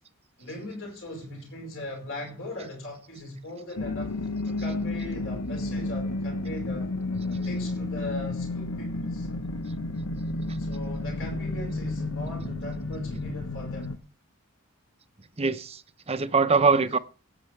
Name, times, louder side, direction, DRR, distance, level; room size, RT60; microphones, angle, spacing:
voice 1, 0.4-4.1 4.4-6.9 7.3-9.3 10.6-14.0 16.5-16.7, left 1 dB, 60° left, 4.9 m, -39 dB
sound 1, 3.8-14.0, left 2 dB, 85° left, 1.1 m, -31 dB
voice 2, 15.4-15.8 16.1-17.0, right 4 dB, 30° right, 0.7 m, -23 dB
17.5 x 8.8 x 3.3 m
head